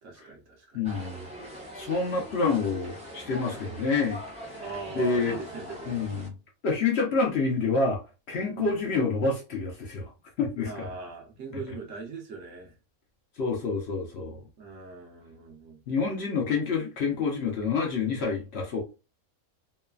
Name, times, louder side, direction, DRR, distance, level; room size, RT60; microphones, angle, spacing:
voice 1, 0.0-0.8 3.5-3.7 4.6-6.0 8.5-8.8 10.7-12.7 14.6-15.8, right 4 dB, 65° right, 1.0 m, -40 dB
voice 2, 0.7-1.2 1.8-4.2 4.5-4.6 4.9-5.4 5.9-6.3 6.6-8.0 8.3-10.1 10.4-10.9 13.4-14.4 15.9-18.8, left 4 dB, 60° left, 0.8 m, -27 dB
sound 1, 0.8-6.3, equal, 10° right, 0.4 m, -42 dB
3.1 x 2.1 x 2.3 m
omnidirectional pair, 1.5 m